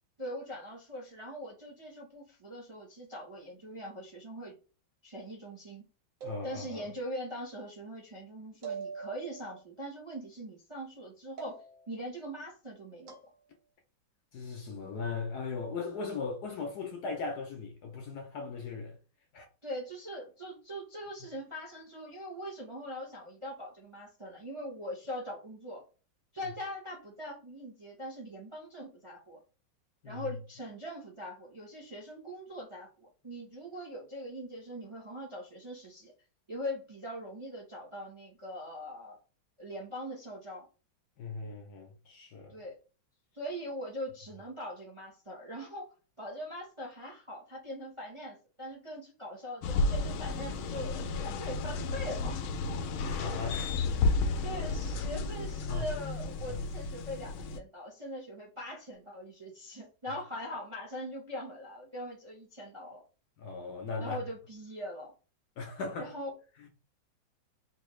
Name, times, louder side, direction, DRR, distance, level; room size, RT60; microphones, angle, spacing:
voice 1, 0.2-4.6 5.0-5.8 6.4-11.6 11.9-13.2 19.6-25.8 26.3-29.4 30.0-36.1 36.5-39.2 39.6-40.6 42.5-42.8 43.3-52.4 54.4-63.0 64.0-65.1 66.0-66.3, equal, 25° right, 0.6 m, -42 dB
voice 2, 6.2-6.8 14.3-19.0 19.3-19.5 30.0-30.3 41.2-42.6 52.9-54.4 55.7-55.9 56.5-56.6 63.4-64.2 65.6-66.1, left 4 dB, 65° left, 1.0 m, -38 dB
sound 1, 6.2-7.0 8.6-9.6 11.4-12.0 13.1-13.3, right 6 dB, 50° right, 1.2 m, -43 dB
sound 2, 49.6-57.6, left 3 dB, 85° left, 1.4 m, -32 dB
4.4 x 2.6 x 3.1 m
omnidirectional pair, 2.2 m